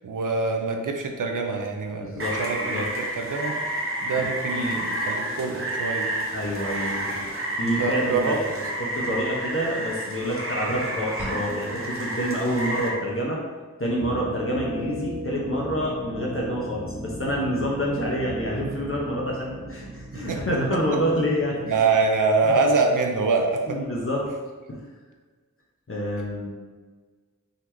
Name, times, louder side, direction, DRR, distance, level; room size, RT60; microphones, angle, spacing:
voice 1, 0.0-3.6 4.0-6.1 7.8-8.4 20.1-20.4 21.7-23.8, right 4 dB, 90° right, 3 dB, 0.5 m, -25 dB
voice 2, 2.0-2.8 4.5-4.8 6.3-7.2 7.6-8.5 8.8-13.4 13.8-21.8 22.4-22.5 23.7-24.3 24.7-24.8 25.9-26.5, equal, 45° left, -3 dB, 0.8 m, -27 dB
Rain, 2.2-12.9, right 1 dB, 45° right, 0.9 m, -30 dB
sound 1, 11.2-12.2, right 1 dB, 10° left, 1.4 m, -35 dB
sound 2, 14.0-22.7, equal, 25° right, 0.4 m, -37 dB
3.9 x 2.9 x 3.2 m, 1.4 s
wide cardioid pair, 50°, 31 cm